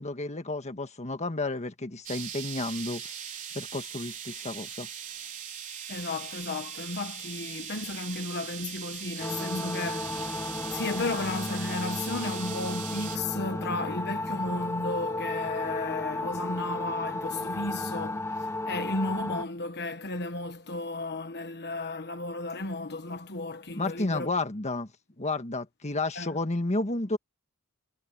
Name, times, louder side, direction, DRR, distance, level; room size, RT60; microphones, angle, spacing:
voice 1, 0.0-3.0 3.5-4.9 23.7-24.9 25.2-27.2, left 2 dB, 30° left, 1.5 m, -31 dB
sound 1, 2.0-13.2, right 8 dB, 35° right, 4.2 m, -40 dB
voice 2, 5.9-24.3 26.1-26.4, left 2 dB, 50° left, 1.3 m, -34 dB
sound 2, 9.2-19.4, left 2 dB, 10° left, 0.6 m, -33 dB
head